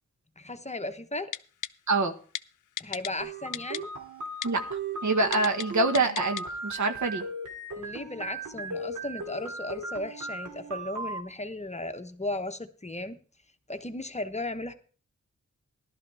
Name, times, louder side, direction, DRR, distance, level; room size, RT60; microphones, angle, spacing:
voice 1, 0.4-1.3 2.8-3.9 7.8-13.2 13.7-14.7, left 2 dB, 20° left, 8 dB, 1.0 m, -36 dB
Typing, 1.3-1.7 2.4-2.5 2.8-3.1 3.5-3.8 4.4-4.5 5.3-5.7 6.0-6.4 6.8-6.9, left 10 dB, 85° left, 0.5 m, -33 dB
sound 1, 3.2-11.2, right 2 dB, 90° right, 2.6 m, -37 dB
voice 2, 5.0-7.2, right 3 dB, 70° right, 7 dB, 1.5 m, -25 dB
14.5 x 12.0 x 3.5 m, 0.40 s
wide cardioid pair, 75°, 30 cm